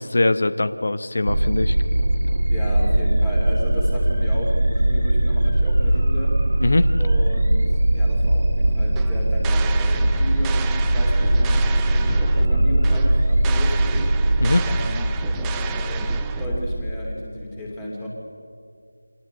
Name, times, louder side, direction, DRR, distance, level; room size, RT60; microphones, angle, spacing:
voice 1, 0.0-1.8 6.6-6.9 14.4-14.7, left 2 dB, 45° left, 12 dB, 0.9 m, -21 dB
sound 1, 1.2-17.0, right 1 dB, 60° right, 1.9 m, -20 dB
voice 2, 2.5-6.4 7.0-14.1 14.6-16.1 16.4-18.1, left 1 dB, 10° left, -2 dB, 2.9 m, -33 dB
sound 2, 8.9-16.8, right 7 dB, 5° right, 0.5 m, -34 dB
25.0 x 18.0 x 7.9 m, 2.2 s
figure-of-eight pair, 170°, 0 cm